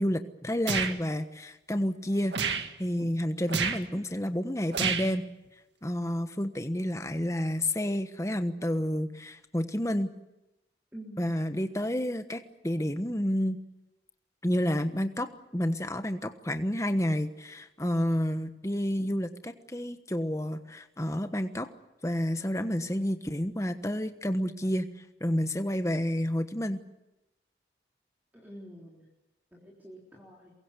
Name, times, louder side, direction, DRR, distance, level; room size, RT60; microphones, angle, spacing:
voice 1, 0.0-2.3 2.8-5.2 5.8-10.1 11.2-13.6 14.4-21.7 22.0-24.9 25.2-26.8, equal, 15° left, 9 dB, 1.2 m, -30 dB
sound 1, 0.7-1.0 2.3-2.7 3.5-3.8 4.7-5.1, right 6 dB, 80° right, 1.9 m, -29 dB
voice 2, 10.9-11.4 28.3-29.1 29.5-30.5, right 1 dB, 10° right, -3 dB, 3.7 m, -47 dB
23.0 x 22.5 x 8.3 m, 0.97 s
head